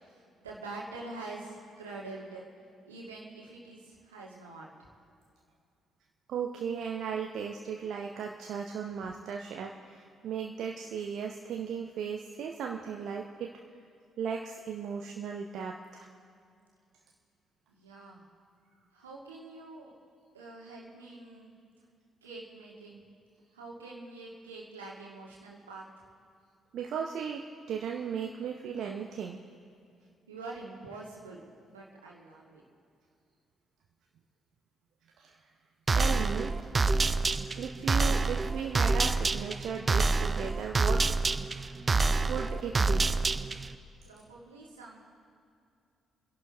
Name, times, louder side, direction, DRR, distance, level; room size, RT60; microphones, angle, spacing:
voice 1, 0.1-2.5 2.9-4.9 17.7-18.2 18.9-19.9 20.3-21.6 22.2-23.0 23.5-25.8 30.3-32.6 44.0-45.0, right 2 dB, 85° right, -4 dB, 2.0 m, -45 dB
voice 2, 6.3-13.5 14.2-16.1 26.7-29.4 35.2-35.3 35.9-36.5 37.3-41.7 42.3-43.1, right 7 dB, 60° right, 1 dB, 0.8 m, -36 dB
sound 1, 35.9-43.8, right 3 dB, 35° right, 0.5 m, -27 dB
28.0 x 11.0 x 3.5 m, 2.4 s
figure-of-eight pair, 45°, 0 cm